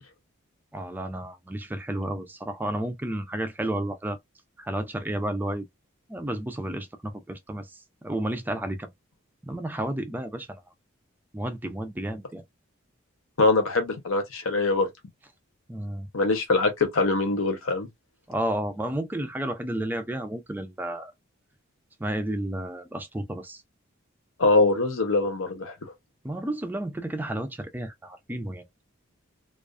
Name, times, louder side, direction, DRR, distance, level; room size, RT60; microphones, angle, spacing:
voice 1, 0.7-4.2 4.6-5.7 6.1-8.9 9.4-10.6 11.3-12.4 15.7-16.1 18.3-21.1 22.0-23.6 26.2-28.6, right 1 dB, 10° right, 0.3 m, -32 dB
voice 2, 13.4-14.9 16.1-17.9 24.4-25.9, left 3 dB, 75° left, 0.8 m, -23 dB
2.4 x 2.3 x 2.3 m
head